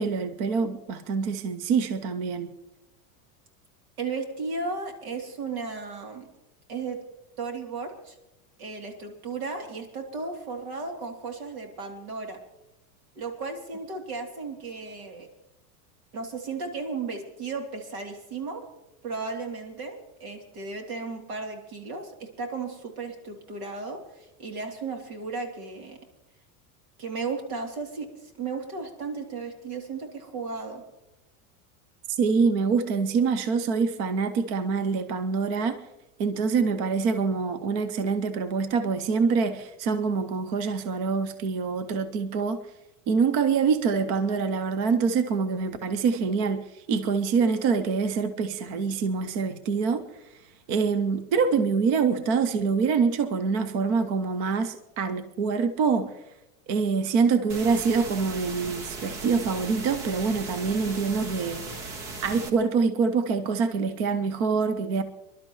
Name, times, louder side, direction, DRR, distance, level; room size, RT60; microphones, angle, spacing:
voice 1, 0.0-2.5 32.1-35.8 36.2-42.6 43.1-46.6 46.9-50.0 50.7-56.1 56.7-61.8 62.2-65.0, right 5 dB, 30° right, 11 dB, 0.4 m, -25 dB
voice 2, 4.0-6.3 6.7-7.0 7.4-8.1 8.6-12.4 13.2-15.3 16.1-18.6 19.0-26.0 27.0-28.1 28.4-30.8, right 4 dB, 70° right, 3 dB, 3.1 m, -35 dB
sound 1, 57.5-62.5, right 3 dB, 45° right, 1.6 m, -37 dB
27.0 x 11.5 x 3.1 m, 0.96 s
supercardioid pair, 175°, 45 cm